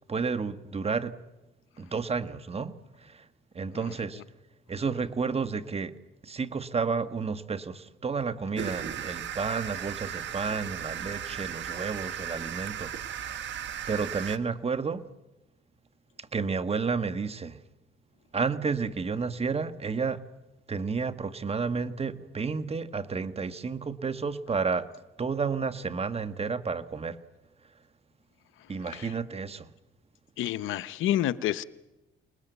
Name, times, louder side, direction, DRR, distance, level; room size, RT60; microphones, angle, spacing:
voice 1, 0.1-1.2 1.8-3.3 3.5-4.2 4.7-6.0 6.2-13.4 13.9-15.1 16.2-17.6 18.3-20.2 20.7-24.9 25.2-27.2 28.7-29.7, right 5 dB, 30° right, 1.4 m, -31 dB
sound 1, 8.6-14.4, right 9 dB, 65° right, 1.4 m, -36 dB
voice 2, 30.4-31.6, left 12 dB, 85° left, 0.9 m, -28 dB
28.0 x 20.0 x 8.2 m
cardioid pair, 90°, 20 cm